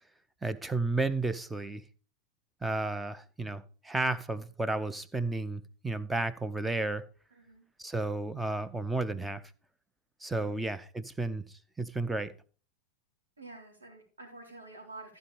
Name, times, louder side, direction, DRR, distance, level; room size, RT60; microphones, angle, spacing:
voice 1, 0.4-1.8 2.6-7.0 7.8-9.4 10.2-12.3, right 2 dB, 5° right, 0.8 m, -32 dB
voice 2, 7.3-7.7 10.4-10.7 13.4-15.2, right 2 dB, 75° right, 3.8 m, -49 dB
14.5 x 5.4 x 5.1 m
figure-of-eight pair, 90°, 0 cm